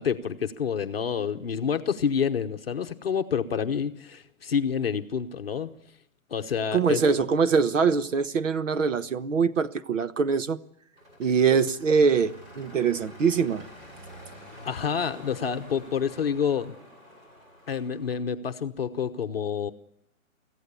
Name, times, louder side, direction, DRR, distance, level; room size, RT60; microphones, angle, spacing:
voice 1, 0.0-5.7 6.3-7.0 14.6-16.7 17.7-19.7, left 7 dB, 45° left, 1.0 m, -28 dB
voice 2, 6.7-10.6 11.2-13.7, right 5 dB, 65° right, 1.3 m, -23 dB
sound 1, 11.0-18.2, equal, 35° right, 8.0 m, -47 dB
25.0 x 15.5 x 8.3 m
hypercardioid pair, 180°, 41 cm